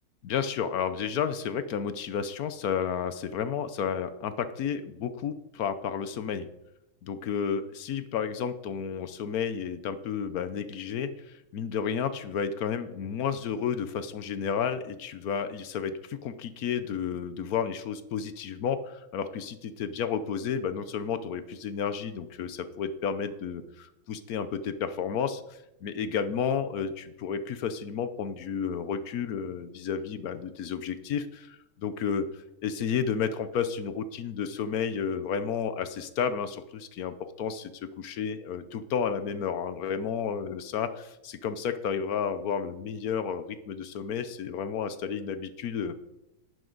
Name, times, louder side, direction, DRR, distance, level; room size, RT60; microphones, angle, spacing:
voice 1, 0.2-6.5 7.0-45.9, left 7 dB, 65° left, 12 dB, 0.9 m, -32 dB
11.5 x 9.6 x 3.9 m, 0.89 s
omnidirectional pair, 2.3 m